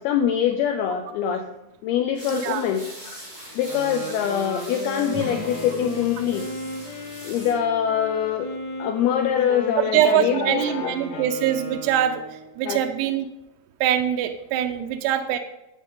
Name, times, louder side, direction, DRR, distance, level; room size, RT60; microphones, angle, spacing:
voice 1, 0.0-1.5 1.8-3.2 3.6-6.5 7.2-8.5 8.8-11.3 12.6-12.8, left 9 dB, 80° left, 5 dB, 2.5 m, -24 dB
sound 1, 2.1-7.6, right 1 dB, 10° right, 3.0 m, -42 dB
voice 2, 2.3-2.6 9.8-12.2 12.6-13.3 13.8-15.4, right 10 dB, 85° right, 5 dB, 2.8 m, -23 dB
Wind instrument woodwind instrument, 3.5-12.5, left 1 dB, 55° left, 4.3 m, -35 dB
sound 2, 5.1-10.1, right 2 dB, 45° right, 1.6 m, -42 dB
14.0 x 8.3 x 3.7 m, 0.96 s
omnidirectional pair, 4.8 m